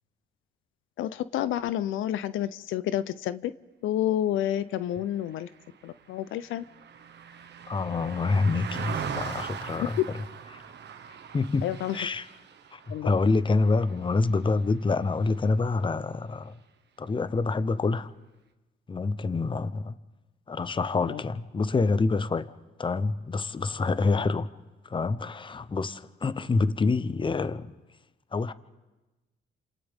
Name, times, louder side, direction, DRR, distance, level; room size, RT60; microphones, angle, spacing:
voice 1, 1.0-3.5 3.8-5.5 5.8-6.6 11.6-12.1 12.9-13.1 21.0-21.2, left 11 dB, 80° left, 0.6 m, -29 dB
Car passing by, 5.3-14.9 15.3-15.5, right 7 dB, 60° right, 1.3 m, -40 dB
voice 2, 7.7-10.0 10.5-10.6 11.3-12.2 12.7-16.5 17.0-18.1 18.9-19.9 20.5-22.5 22.8-24.5 24.8-27.7 28.3-28.5, left 3 dB, 25° left, 0.8 m, -27 dB
29.5 x 27.5 x 3.6 m
cardioid pair, 90°, 20 cm